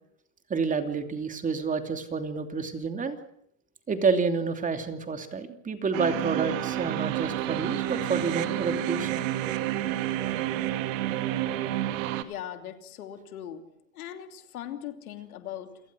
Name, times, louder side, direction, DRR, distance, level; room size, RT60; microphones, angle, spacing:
voice 1, 0.5-3.2 3.9-9.2, right 4 dB, 20° right, 7 dB, 2.9 m, -29 dB
sound 1, 5.9-12.2, right 13 dB, 65° right, 2.4 m, -29 dB
voice 2, 12.2-13.7 13.9-15.8, left 10 dB, 80° left, 7 dB, 3.0 m, -39 dB
28.5 x 18.0 x 6.3 m, 0.72 s
supercardioid pair, 120°, 43 cm